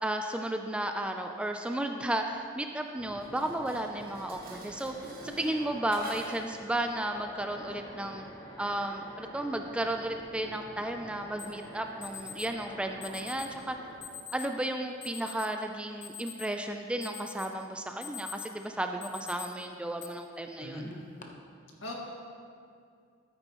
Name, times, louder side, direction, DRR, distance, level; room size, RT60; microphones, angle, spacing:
voice 1, 0.0-4.9 5.2-8.2 8.6-13.8 14.3-20.9, right 1 dB, 5° right, 4 dB, 0.3 m, -33 dB
sound 1, 2.9-14.0, equal, 20° left, 1.9 m, -48 dB
Dishes pots and pans, 3.2-6.6, right 1 dB, 45° right, 1.3 m, -47 dB
Alarm, 11.4-11.5 12.0-12.5 13.0-13.5 14.0-14.5 15.0-15.5 15.9-16.6 17.0-17.5 17.9-18.6 19.0-19.5 20.0-20.1 20.9-21.2, left 8 dB, 40° left, 0.8 m, -43 dB
voice 2, 20.6-21.3 21.8-21.9, left 1 dB, 70° left, -2 dB, 1.8 m, -41 dB
13.0 x 9.0 x 3.0 m, 2.3 s
head